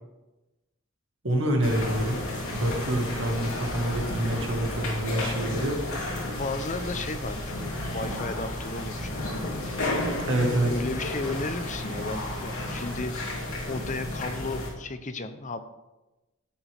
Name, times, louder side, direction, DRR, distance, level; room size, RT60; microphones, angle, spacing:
voice 1, 1.2-2.2 2.5-6.2 10.3-10.7, right 1 dB, 60° right, 2 dB, 1.8 m, -27 dB
sound 1, 1.6-14.7, left 1 dB, 70° left, 3.2 m, -32 dB
voice 2, 6.2-9.5 10.7-15.6, left 3 dB, 35° left, 9 dB, 0.7 m, -34 dB
13.0 x 8.9 x 3.5 m, 1.0 s
head